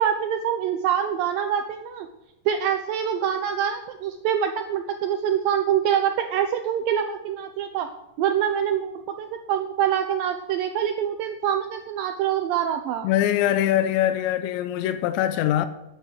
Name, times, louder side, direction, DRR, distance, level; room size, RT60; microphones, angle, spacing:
voice 1, 0.0-2.1 2.5-7.9 8.2-13.1, right 9 dB, 85° right, 2.0 m, -25 dB
voice 2, 13.0-15.7, left 12 dB, 90° left, 3.0 m, -23 dB
9.4 x 9.3 x 9.1 m
omnidirectional pair, 5.1 m